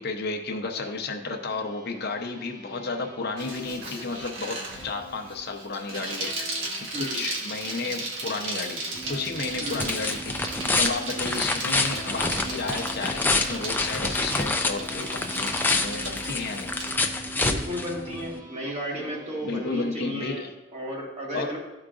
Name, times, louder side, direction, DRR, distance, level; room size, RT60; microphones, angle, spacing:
voice 1, 0.0-4.6 4.8-6.5 7.0-16.8 19.4-20.5 21.3-21.6, left 3 dB, 55° left, 4 dB, 0.7 m, -32 dB
sound 1, 0.7-20.4, left 1 dB, 20° right, 1.3 m, -48 dB
Bicycle, 3.4-16.9, right 2 dB, 80° right, 1.4 m, -36 dB
sound 2, 8.9-18.4, left 2 dB, 10° left, 0.5 m, -28 dB
voice 2, 9.6-10.0 11.1-11.4 17.3-21.6, equal, 35° right, -2 dB, 1.7 m, -34 dB
12.5 x 4.8 x 2.5 m, 1.2 s
head